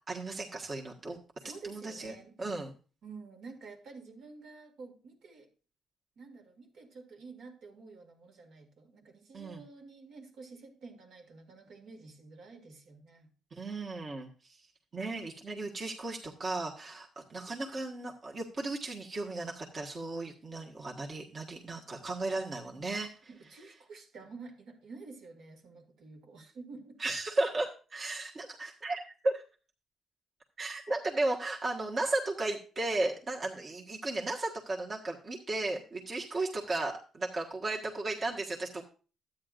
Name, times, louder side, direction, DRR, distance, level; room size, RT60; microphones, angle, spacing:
voice 1, 0.1-1.2 1.6-2.7 9.3-9.6 13.5-14.6 14.9-23.1 27.0-29.4 30.6-38.8, right 2 dB, 40° right, 1.4 m, -35 dB
voice 2, 1.4-2.3 3.0-5.5 6.2-13.3 23.3-27.0, right 4 dB, 70° right, 2.1 m, -50 dB
12.0 x 9.0 x 2.5 m
cardioid pair, 90°, 0 cm